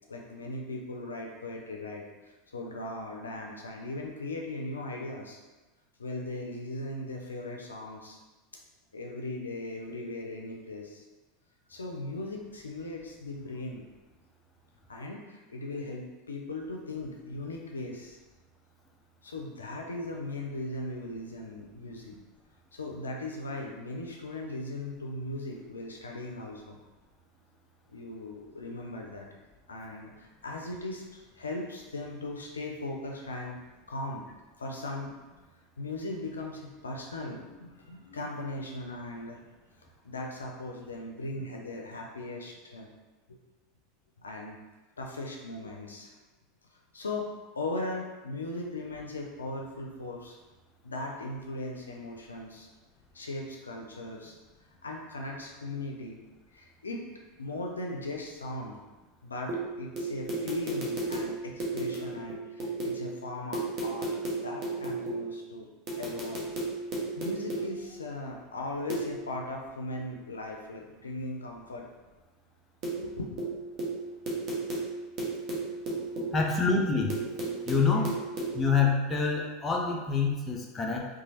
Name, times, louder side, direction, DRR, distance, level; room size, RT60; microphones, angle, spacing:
voice 1, 0.1-5.4 6.0-8.2 8.9-11.0 11.7-13.9 14.9-18.2 19.2-22.1 22.7-26.8 27.9-29.3 29.7-33.6 33.9-34.2 34.6-35.1 35.8-39.4 40.0-42.9 43.3-43.4 44.2-44.6 45.0-46.2 46.9-50.4 50.8-52.7 53.1-54.3 54.8-56.2 56.5-57.0 57.4-58.8 59.2-65.7 66.0-66.5 67.2-71.8 73.0-73.4 75.8-76.7 77.9-78.1 78.8-78.9, left 2 dB, 90° left, 0 dB, 0.3 m, -38 dB
sound 1, 59.5-63.1 63.5-65.3 65.9-67.8 68.9-69.2 72.8-73.1 73.4-76.4 77.1-78.6, right 3 dB, 50° right, 0.9 m, -34 dB
voice 2, 76.3-77.1 77.7-78.1 78.5-81.1, left 4 dB, 25° left, 0 dB, 0.5 m, -26 dB
3.0 x 2.2 x 2.8 m, 1.2 s
hypercardioid pair, 85°, 0 cm